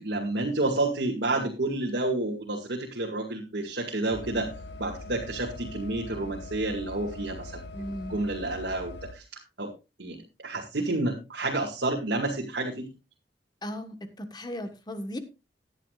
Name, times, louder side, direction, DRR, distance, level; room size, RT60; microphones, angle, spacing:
voice 1, 0.0-4.5 4.8-9.7 10.0-12.9, right 2 dB, 75° right, -1 dB, 2.2 m, -30 dB
sound 1, 4.1-9.1, left 2 dB, 85° left, 1.8 m, -42 dB
voice 2, 7.7-8.2 13.6-15.2, equal, 25° left, 9 dB, 1.4 m, -36 dB
16.0 x 10.5 x 2.5 m, 0.28 s
head